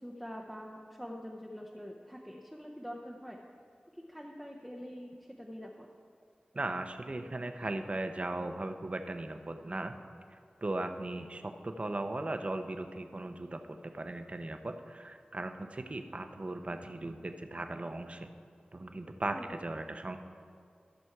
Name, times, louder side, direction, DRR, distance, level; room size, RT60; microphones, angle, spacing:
voice 1, 0.0-3.4 4.0-5.9 19.3-19.5, equal, 5° left, 0 dB, 0.7 m, -45 dB
voice 2, 6.5-9.9 10.3-18.3 18.7-20.2, right 2 dB, 40° right, 7 dB, 0.7 m, -38 dB
13.5 x 6.1 x 4.6 m, 2.3 s
wide cardioid pair, 70°, 3 cm